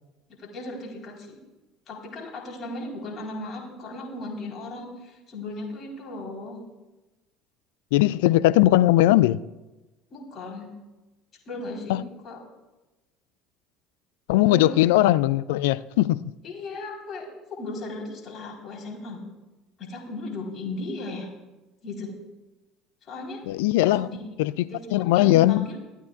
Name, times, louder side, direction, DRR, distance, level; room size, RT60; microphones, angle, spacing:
voice 1, 0.4-1.4 1.9-6.6 10.1-10.7 11.5-12.4 14.3-14.8 16.4-19.3 19.8-21.3 21.8-22.1 23.0-23.4 23.8-24.2 24.7-25.8, left 2 dB, 40° left, 3.9 m, -36 dB
voice 2, 7.9-9.4 11.9-12.0 14.3-16.2 23.5-24.1 24.4-24.5 24.9-25.7, left 16 dB, 70° left, 0.3 m, -19 dB
22.0 x 13.5 x 2.4 m
figure-of-eight pair, 65°, 0 cm